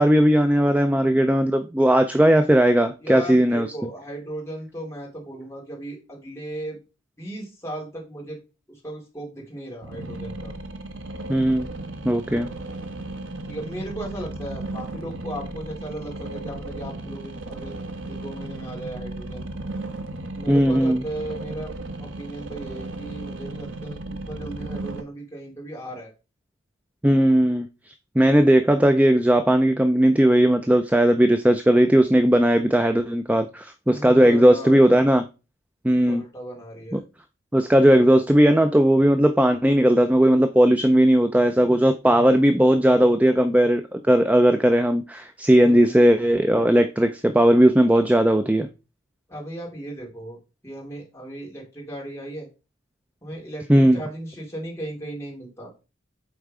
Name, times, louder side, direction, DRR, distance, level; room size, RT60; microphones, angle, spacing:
voice 1, 0.0-3.7 11.3-11.7 12.0-12.5 20.5-21.0 27.0-35.2 35.8-36.2 36.9-37.0 37.5-48.7 53.7-54.0, right 1 dB, 5° right, 0.4 m, -18 dB
voice 2, 3.0-6.8 7.2-8.4 8.7-10.5 13.4-17.8 18.1-19.5 20.3-21.7 22.0-26.1 33.9-34.8 36.1-37.0 45.6-46.0 49.3-50.4 50.6-52.5 53.2-55.7, right 1 dB, 15° left, 3.1 m, -36 dB
sound 1, 9.8-25.0, right 2 dB, 70° right, 1.1 m, -35 dB
8.1 x 4.5 x 3.7 m
head